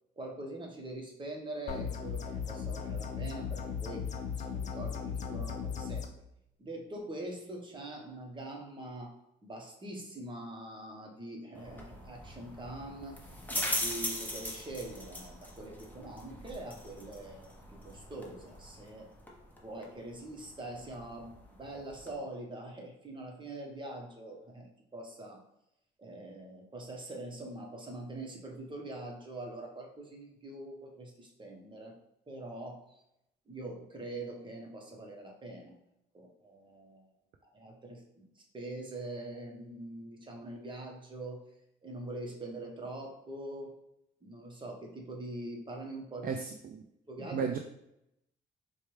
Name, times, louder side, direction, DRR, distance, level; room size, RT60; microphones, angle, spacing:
voice 1, 0.1-4.1 4.4-6.1 6.6-9.2 9.4-13.2 13.5-19.1 19.6-25.5 26.0-32.0 32.3-32.9 33.5-35.8 36.1-37.1 37.4-41.4 41.8-43.8 44.2-46.3 47.1-47.5, right 1 dB, 25° right, 0 dB, 1.0 m, -43 dB
sound 1, 1.7-6.1, left 7 dB, 35° left, 0.5 m, -37 dB
sound 2, 11.5-22.2, left 1 dB, 10° left, 0.8 m, -41 dB
voice 2, 46.2-46.8 47.3-47.6, right 6 dB, 50° right, 4 dB, 0.4 m, -34 dB
4.5 x 2.3 x 3.2 m, 0.79 s
cardioid pair, 90°, 20 cm